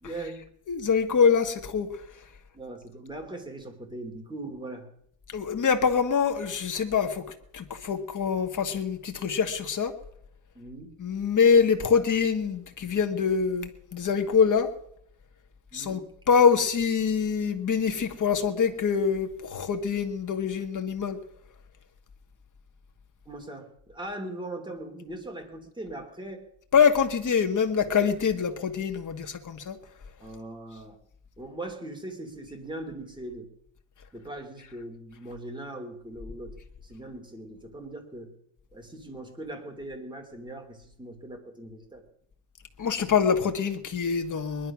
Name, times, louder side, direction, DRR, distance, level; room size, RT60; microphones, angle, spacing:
voice 1, 0.0-0.4 1.2-1.3 2.5-4.9 10.5-10.9 15.7-16.0 23.3-26.5 30.2-31.0 31.4-33.5 34.1-38.3 38.7-42.0, right 1 dB, 10° right, 2.8 m, -40 dB
voice 2, 0.7-1.9 5.3-7.2 7.5-9.9 11.0-14.7 15.7-16.0 16.3-21.2 26.7-29.8 42.8-44.7, left 6 dB, 40° left, 1.7 m, -24 dB
20.5 x 11.5 x 6.1 m
cardioid pair, 155°, 48 cm